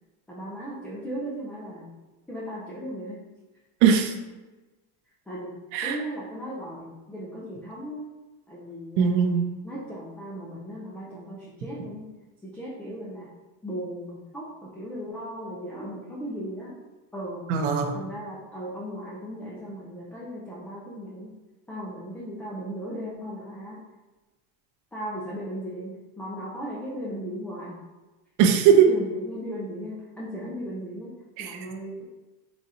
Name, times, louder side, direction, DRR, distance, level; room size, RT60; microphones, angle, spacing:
voice 1, 0.3-2.0 2.3-3.2 5.3-8.1 8.5-9.3 9.6-12.1 12.4-13.3 13.6-16.8 17.1-17.5 17.9-21.3 21.7-23.8 24.9-27.8 28.8-32.0, equal, 5° left, -7 dB, 0.3 m, -37 dB
voice 2, 3.8-4.1 5.7-6.0 9.0-9.4 17.5-17.9 28.4-28.8 31.4-31.6, right 7 dB, 60° right, 4 dB, 0.7 m, -19 dB
4.0 x 2.4 x 4.1 m, 1.2 s
supercardioid pair, 130°, 46 cm